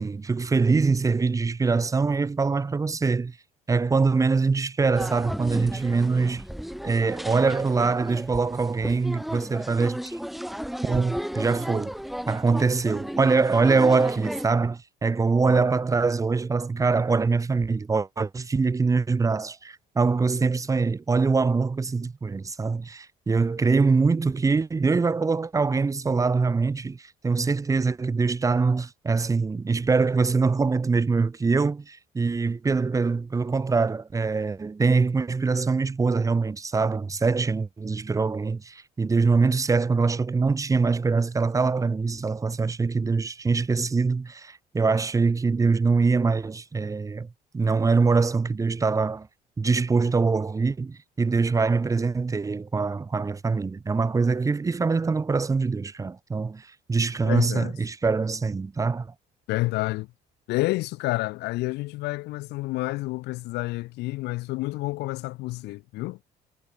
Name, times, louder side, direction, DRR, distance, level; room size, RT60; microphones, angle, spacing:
voice 1, 0.0-3.4 3.7-6.4 6.8-10.2 10.8-12.0 12.3-47.3 47.5-49.3 49.6-59.1, right 4 dB, 20° right, 0.8 m, -23 dB
sound 1, 5.0-14.5, equal, ahead, 1.4 m, -34 dB
voice 2, 57.2-57.7 59.5-60.1 60.5-66.2, left 20 dB, 85° left, 0.7 m, -29 dB
cardioid pair, 110°, 17 cm